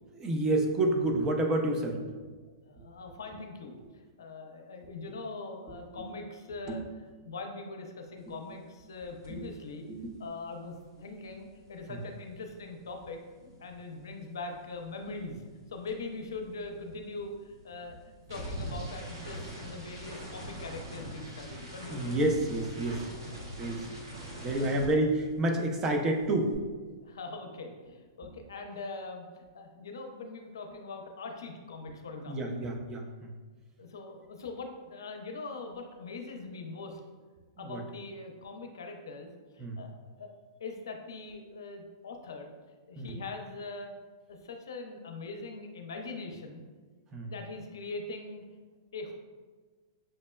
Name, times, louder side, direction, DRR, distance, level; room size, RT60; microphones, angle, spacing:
voice 1, 0.1-2.1 6.0-6.1 6.7-6.8 9.3-9.4 9.9-10.1 11.9-12.0 21.9-23.0 23.3-23.8 24.4-26.5 32.3-33.3 37.6-37.8 39.6-39.8 43.0-43.2 47.1-47.3, right 1 dB, 25° right, 2 dB, 0.6 m, -29 dB
voice 2, 2.7-3.8 4.2-9.9 10.2-13.2 13.6-18.0 18.3-22.2 24.5-25.0 27.0-32.6 33.8-37.0 37.6-39.9 40.2-40.3 40.6-42.5 42.9-43.9 44.3-46.6 47.3-48.4 48.9-49.1, left 3 dB, 80° left, 4 dB, 0.5 m, -42 dB
sound 1, 9.2-9.5 9.7-14.1 14.4-25.6 25.9-26.5, equal, 75° right, 0.9 m, -44 dB
6.3 x 2.1 x 2.2 m, 1.4 s
hypercardioid pair, 115°, 2 cm